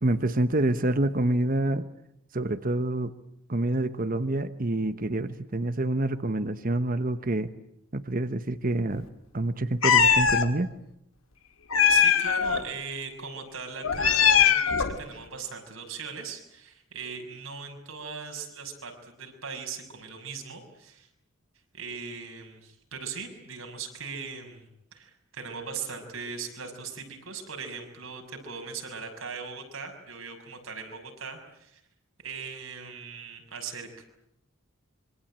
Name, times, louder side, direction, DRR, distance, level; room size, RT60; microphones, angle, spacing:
voice 1, 0.0-1.9 2.3-3.1 3.5-7.5 7.9-9.1 9.3-10.7, right 1 dB, 40° right, 11 dB, 1.1 m, -27 dB
Meow, 9.8-10.5 11.7-12.6 13.8-15.0, left 7 dB, 85° left, 2.2 m, -20 dB
voice 2, 11.9-21.1 21.7-31.8 32.2-34.0, right 5 dB, 85° right, 3 dB, 6.5 m, -39 dB
26.0 x 24.5 x 8.8 m, 0.76 s
head